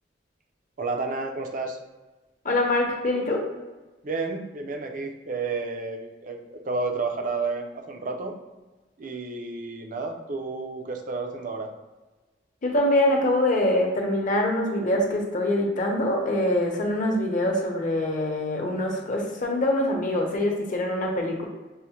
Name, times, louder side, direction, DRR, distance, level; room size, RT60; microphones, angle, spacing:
voice 1, 0.8-1.8 4.0-8.4 9.0-11.7, right 3 dB, 50° right, 4 dB, 0.5 m, -31 dB
voice 2, 2.4-3.4 12.6-21.5, left 1 dB, 45° left, 1 dB, 0.7 m, -24 dB
6.2 x 2.1 x 2.8 m, 1.2 s
head